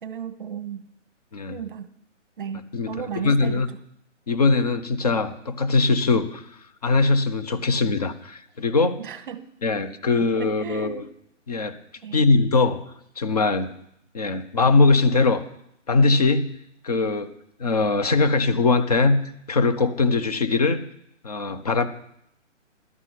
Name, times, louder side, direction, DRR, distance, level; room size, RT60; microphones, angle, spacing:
voice 1, 0.0-0.8 1.5-1.9 2.4-3.6 9.0-9.5 10.1-11.1 12.0-12.4, right 8 dB, 45° right, 12 dB, 1.0 m, -35 dB
voice 2, 2.7-3.7 4.3-6.5 6.8-9.0 9.6-11.1 11.5-11.7 12.1-13.7 14.1-15.4 15.9-16.5 16.8-17.3 17.6-19.2 19.5-20.8 21.2-21.9, left 3 dB, 30° left, 10 dB, 0.7 m, -21 dB
12.5 x 5.9 x 8.1 m, 0.75 s
hypercardioid pair, 170°, 37 cm